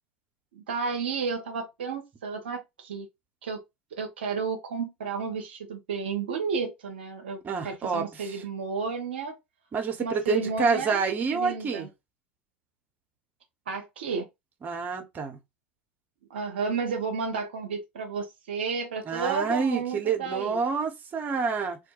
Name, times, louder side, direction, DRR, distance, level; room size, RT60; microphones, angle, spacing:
voice 1, 0.5-3.1 3.4-3.6 3.9-9.4 10.0-11.0 11.3-11.9 13.7-14.3 16.3-20.6, right 5 dB, 75° right, 0.5 m, -32 dB
voice 2, 7.4-8.4 9.7-11.9 14.6-15.4 19.0-21.8, right 5 dB, 30° right, 0.8 m, -28 dB
2.3 x 2.1 x 2.9 m
figure-of-eight pair, 75°, 6 cm